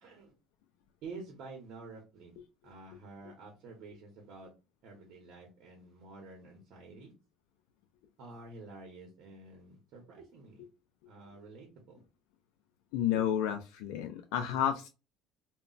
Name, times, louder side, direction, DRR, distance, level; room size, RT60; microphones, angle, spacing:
voice 1, 0.0-0.3 1.0-4.5 4.8-7.1 8.2-10.7 11.1-12.0, right 3 dB, 50° right, 1 dB, 0.8 m, -49 dB
voice 2, 12.9-14.9, left 10 dB, 85° left, 6 dB, 0.3 m, -31 dB
2.2 x 2.1 x 3.8 m, 0.29 s
cardioid pair, 170°, 0 cm